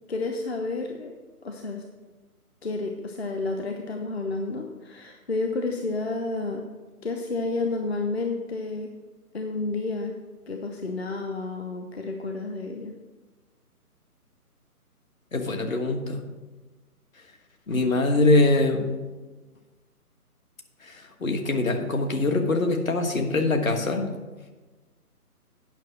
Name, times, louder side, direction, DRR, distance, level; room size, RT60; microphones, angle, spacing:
voice 1, 0.1-1.1 1.4-1.8 2.6-6.7 7.0-8.9 9.3-10.2 10.5-12.9, left 3 dB, 45° left, 3 dB, 0.8 m, -30 dB
voice 2, 15.3-16.2 17.7-18.9 20.8-24.1, left 2 dB, 60° left, 4 dB, 1.5 m, -23 dB
9.2 x 5.8 x 6.2 m, 1.2 s
figure-of-eight pair, 145°, 45 cm